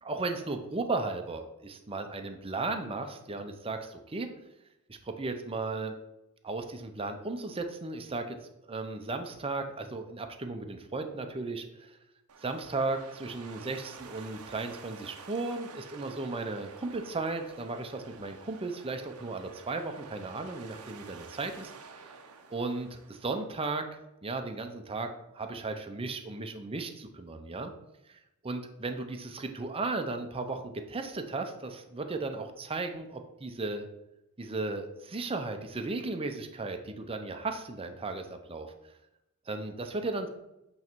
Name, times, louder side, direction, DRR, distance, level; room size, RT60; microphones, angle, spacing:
voice 1, 0.0-4.3 4.9-5.9 6.4-8.4 8.7-12.0 12.4-21.7 22.5-23.9 24.2-27.7 28.1-33.9 34.4-38.7 39.5-40.3, right 3 dB, 25° right, 6 dB, 0.6 m, -35 dB
sound 1, 12.3-23.5, right 5 dB, 80° right, 0.7 m, -50 dB
8.2 x 3.2 x 4.5 m, 0.90 s
head